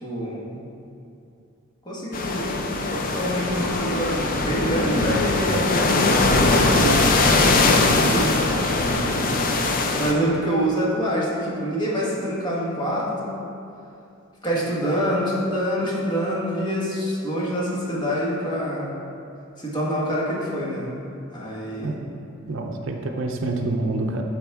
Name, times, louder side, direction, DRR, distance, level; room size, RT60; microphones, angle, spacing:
voice 1, 0.0-0.6 1.8-7.1 7.7-8.4 8.8-9.5 10.0-13.4 14.4-18.9 19.6-20.9 21.3-22.0, equal, 20° left, -6 dB, 1.5 m, -26 dB
sound 1, 2.1-10.1, left 2 dB, 45° left, 0.5 m, -21 dB
voice 2, 22.5-24.2, right 2 dB, 65° right, 3 dB, 0.6 m, -27 dB
12.0 x 4.2 x 3.5 m, 2.6 s
head